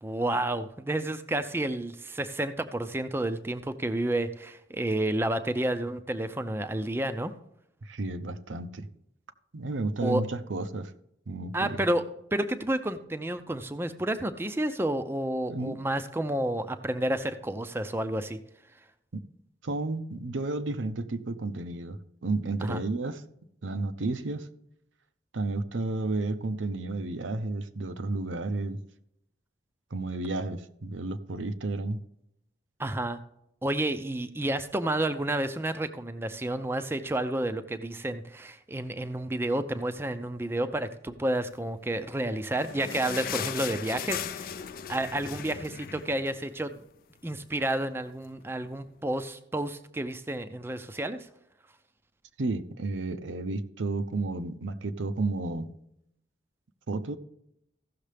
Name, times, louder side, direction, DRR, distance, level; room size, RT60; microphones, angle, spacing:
voice 1, 0.0-7.3 10.0-10.2 11.5-12.0 12.3-18.4 22.6-22.8 32.8-33.2 33.6-44.6 44.9-46.7 47.2-51.3, right 1 dB, 10° right, 0.4 m, -30 dB
voice 2, 7.8-8.9 9.5-10.9 11.3-11.8 15.5-15.8 19.1-19.2 19.6-23.2 23.6-24.5 25.3-28.8 29.9-32.0 52.4-55.7 56.9-57.2, right 2 dB, 90° right, 0.7 m, -32 dB
sound 1, 42.1-46.8 47.2-47.3 47.6-47.7 48.4-48.5, left 8 dB, 50° left, 0.4 m, -37 dB
15.5 x 6.5 x 3.4 m
head